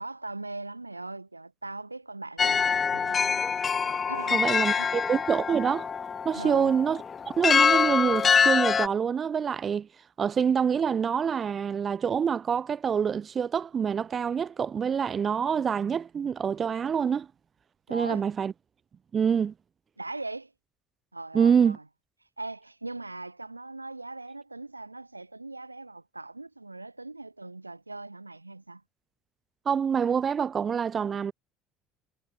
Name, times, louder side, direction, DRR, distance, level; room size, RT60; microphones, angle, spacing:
voice 1, 0.0-3.4 4.1-4.9 6.3-6.7 17.9-18.3 20.0-20.5 21.1-21.8 22.4-28.8, right 2 dB, 90° right, 4.4 m, -40 dB
sound 1, 2.4-8.9, left 6 dB, 30° left, 0.5 m, -25 dB
voice 2, 4.3-5.9 6.2-7.0 7.4-9.9 10.2-17.3 17.9-18.5 19.1-19.5 21.3-21.8 29.7-31.3, right 7 dB, 35° right, 3.7 m, -26 dB
figure-of-eight pair, 60°, 0 cm